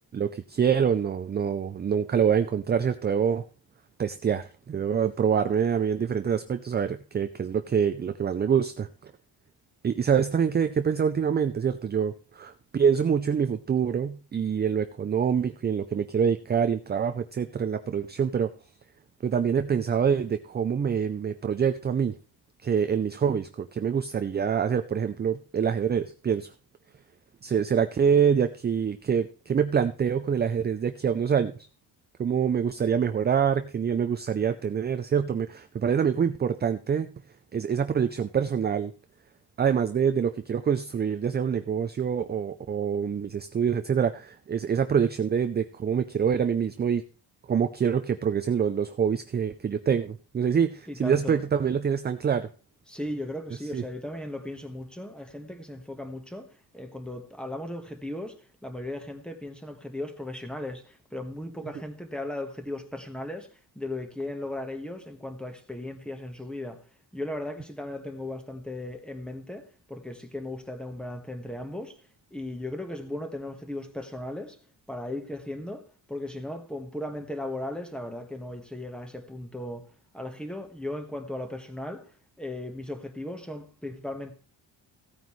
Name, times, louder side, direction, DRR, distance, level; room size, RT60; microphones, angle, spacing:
voice 1, 0.1-3.4 4.0-9.1 9.8-18.5 19.2-22.2 22.6-26.5 27.4-31.5 32.2-37.1 37.5-38.9 39.6-47.0 47.5-52.5 53.7-53.8, right 7 dB, 25° right, 0.4 m, -25 dB
voice 2, 50.9-51.4 52.9-72.0 72.3-74.6 74.9-82.1 82.4-84.3, left 1 dB, ahead, 1.4 m, -37 dB
15.5 x 9.2 x 3.2 m
wide cardioid pair, 155°, 41 cm